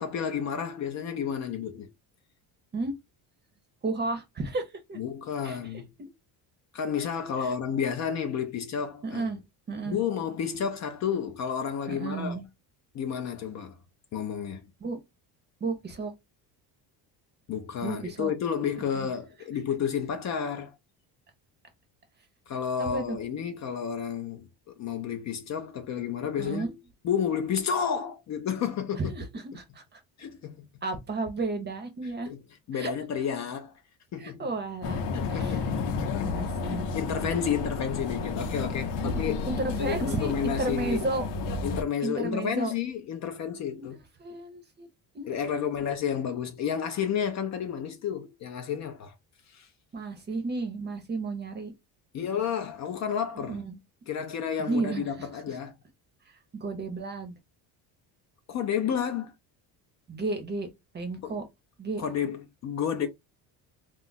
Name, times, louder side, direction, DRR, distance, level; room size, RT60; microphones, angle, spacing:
voice 1, 0.0-1.9 5.0-5.9 6.7-9.3 9.9-12.4 12.9-13.8 14.1-14.6 17.5-20.7 22.5-24.5 24.7-26.8 27.0-29.0 30.2-30.6 32.3-32.4 32.7-33.7 34.1-34.5 35.1-36.3 36.7-39.4 39.8-41.0 41.6-44.0 45.2-49.1 49.5-49.7 52.1-53.6 54.1-55.7 58.5-59.3 61.2-61.4 62.0-63.1, left 7 dB, 45° left, 0.5 m, -31 dB
voice 2, 3.8-5.0 5.4-6.1 7.0-7.1 7.4-7.5 9.0-9.4 9.7-10.0 11.9-12.4 14.8-15.0 15.6-16.1 17.8-18.3 18.8-19.1 22.8-23.2 26.4-26.7 29.0-30.0 30.8-32.3 32.7-32.9 34.2-35.0 35.3-35.7 36.2-36.8 39.0-39.1 39.5-41.2 42.0-42.7 43.8-43.9 44.2-44.9 45.1-45.9 49.9-51.7 53.3-53.8 54.7-55.6 56.3-57.3 60.1-60.7 60.9-61.4 61.8-62.0, right 3 dB, 25° right, 0.7 m, -33 dB
sound 1, 34.8-41.8, left 4 dB, 80° left, 0.7 m, -31 dB
2.3 x 2.0 x 3.8 m
cardioid pair, 135°, 42 cm